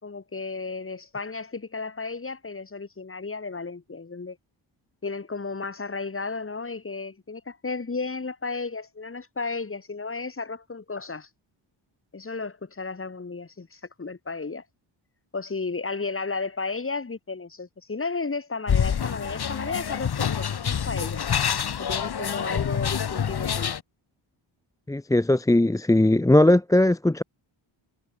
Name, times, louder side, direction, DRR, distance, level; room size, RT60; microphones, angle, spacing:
voice 1, 0.0-4.4 5.0-11.3 12.1-14.6 15.3-21.2 21.8-23.7, left 4 dB, 25° left, 3.2 m, -33 dB
sound 1, 18.7-23.8, left 8 dB, 50° left, 2.0 m, -27 dB
voice 2, 24.9-27.2, left 1 dB, 5° left, 0.6 m, -19 dB
wide cardioid pair, 130°, 49 cm